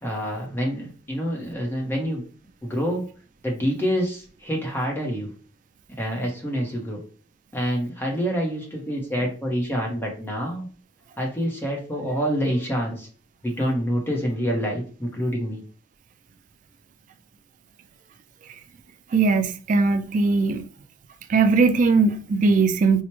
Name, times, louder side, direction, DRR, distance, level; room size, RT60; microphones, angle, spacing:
voice 1, 0.0-2.2 2.6-3.0 3.4-5.3 6.0-7.0 7.5-10.7 11.2-13.1 13.4-15.6, equal, 10° left, 0.7 m, -27 dB
voice 2, 19.1-20.6 21.3-23.0, right 4 dB, 45° right, 0.3 m, -19 dB
4.4 x 2.0 x 3.0 m
head